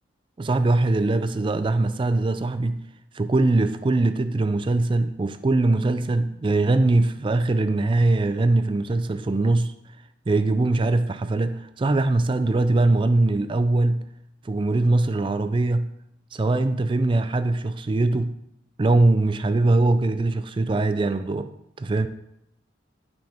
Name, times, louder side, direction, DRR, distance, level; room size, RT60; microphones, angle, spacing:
voice 1, 0.4-2.8 3.1-9.7 10.3-14.0 14.4-15.9 16.3-18.4 18.8-21.5 21.8-22.1, right 2 dB, 30° right, 0.4 m, -22 dB
9.5 x 5.9 x 4.3 m
head